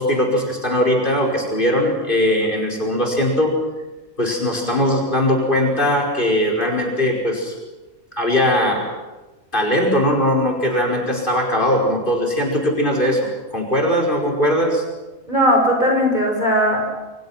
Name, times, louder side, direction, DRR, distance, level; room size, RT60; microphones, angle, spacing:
voice 1, 0.0-3.6 4.2-7.5 8.1-8.9 9.5-14.8, left 1 dB, 35° left, 2 dB, 5.4 m, -20 dB
voice 2, 15.3-16.8, equal, 35° right, 1 dB, 6.3 m, -17 dB
28.5 x 25.5 x 6.0 m, 1.2 s
omnidirectional pair, 1.4 m